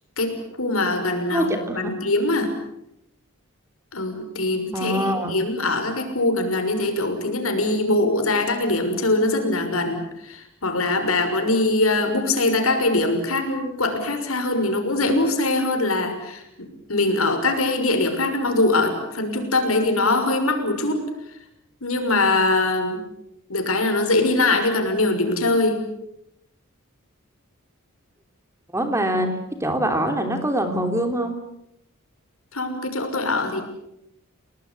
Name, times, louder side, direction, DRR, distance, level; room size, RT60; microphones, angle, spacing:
voice 1, 0.2-2.5 3.9-21.1 21.8-23.0 23.5-25.8 32.5-33.6, left 2 dB, 85° left, 6 dB, 6.1 m, -22 dB
voice 2, 1.3-1.9 4.7-5.3 28.7-31.4, right 1 dB, 15° right, 6 dB, 3.5 m, -24 dB
30.0 x 19.5 x 8.5 m, 0.82 s
head